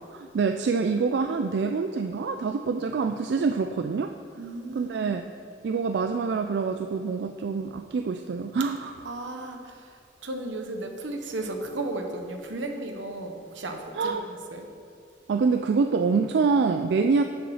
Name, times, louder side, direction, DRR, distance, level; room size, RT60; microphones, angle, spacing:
voice 1, 0.1-4.2 4.7-5.2 5.6-9.1 14.0-14.3 15.3-17.2, right 4 dB, 65° right, 6 dB, 0.3 m, -26 dB
voice 2, 4.4-5.1 9.0-14.7, right 2 dB, 85° right, 4 dB, 1.0 m, -35 dB
7.5 x 7.0 x 5.6 m, 2.6 s
head